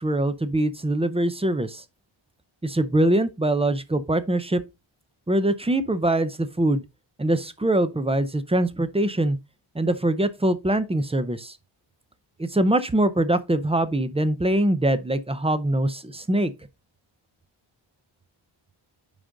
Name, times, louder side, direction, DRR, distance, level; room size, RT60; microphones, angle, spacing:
voice 1, 0.0-1.8 2.6-4.6 5.3-6.8 7.2-9.4 9.7-11.6 12.4-16.5, right 1 dB, 10° right, 0.5 m, -23 dB
9.7 x 3.8 x 3.8 m
wide cardioid pair, 155°, 50 cm